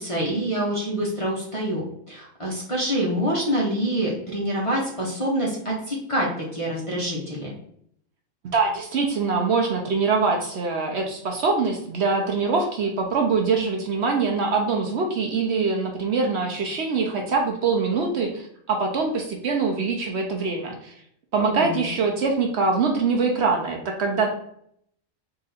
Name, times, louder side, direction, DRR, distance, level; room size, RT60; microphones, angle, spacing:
voice 1, 0.0-7.5 21.4-21.9, equal, 30° left, -4 dB, 0.8 m, -26 dB
voice 2, 8.5-20.9 21.3-24.3, right 4 dB, 60° right, 2 dB, 0.8 m, -23 dB
3.8 x 2.5 x 4.0 m, 0.68 s
omnidirectional pair, 1.4 m